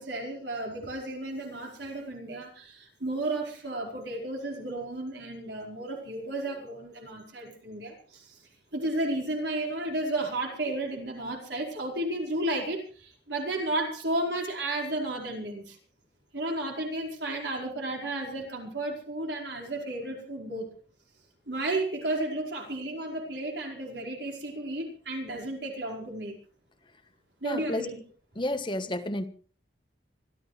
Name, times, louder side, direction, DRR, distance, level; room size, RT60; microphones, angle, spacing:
voice 1, 0.0-8.4 8.7-15.8 16.3-20.7 21.5-26.3 27.4-28.0, right 1 dB, 70° right, 1 dB, 4.7 m, -33 dB
voice 2, 27.4-27.9 28.4-29.3, left 1 dB, 25° left, 7 dB, 1.3 m, -31 dB
25.5 x 14.5 x 3.3 m, 0.41 s
head